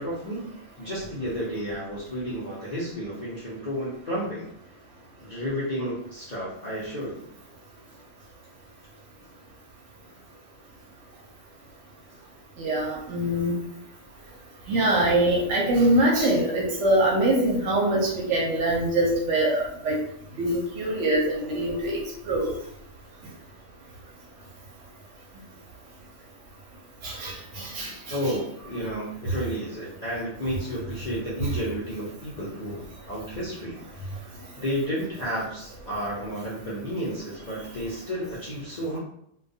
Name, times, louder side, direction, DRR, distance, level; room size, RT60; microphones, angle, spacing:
voice 1, 0.0-4.5 5.2-7.3 28.1-39.0, equal, 50° left, -9 dB, 0.4 m, -32 dB
voice 2, 12.6-13.6 14.7-20.0 20.4-22.0 22.3-22.5 27.0-28.2, right 1 dB, 65° right, -3 dB, 0.8 m, -23 dB
2.2 x 2.2 x 2.6 m, 0.73 s
omnidirectional pair, 1.5 m